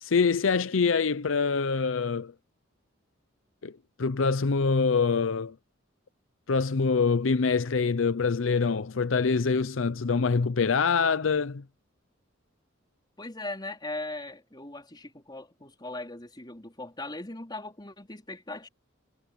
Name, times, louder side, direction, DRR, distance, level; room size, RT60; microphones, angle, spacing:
voice 1, 0.0-2.3 3.6-3.7 4.0-5.5 6.5-11.6, left 5 dB, 80° left, 0.6 m, -25 dB
voice 2, 13.2-18.7, left 2 dB, 20° left, 4.0 m, -39 dB
head